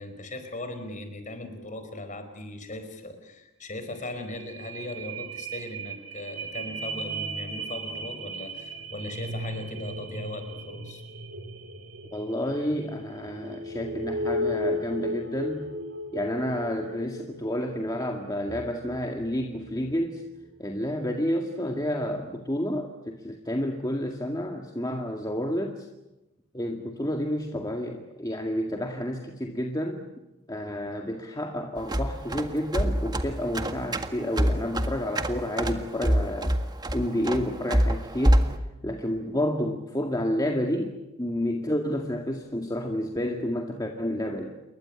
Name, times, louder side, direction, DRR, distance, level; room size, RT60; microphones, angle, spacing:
voice 1, 0.0-11.0, left 1 dB, 40° left, 8 dB, 5.0 m, -38 dB
sound 1, 3.7-3.8 4.1-20.0 20.5-20.6, equal, 85° right, 3.9 m, -36 dB
voice 2, 12.1-15.7 16.1-20.3 20.6-25.9 26.5-30.0 30.5-36.6 36.9-38.4 38.8-44.5, equal, 20° left, 2 dB, 2.0 m, -30 dB
sound 2, 31.8-38.6, equal, 20° right, 1.7 m, -26 dB
28.5 x 22.5 x 8.9 m, 0.99 s
head